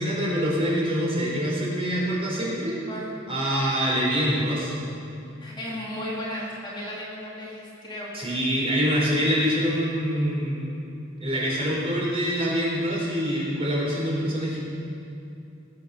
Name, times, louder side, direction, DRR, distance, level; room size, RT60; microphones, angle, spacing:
voice 1, 0.0-2.8 3.3-4.7 8.1-10.7 11.2-14.6, equal, 30° right, -5 dB, 4.2 m, -25 dB
voice 2, 5.4-8.1, equal, 25° left, -6 dB, 2.5 m, -35 dB
20.0 x 7.9 x 6.4 m, 2.6 s
head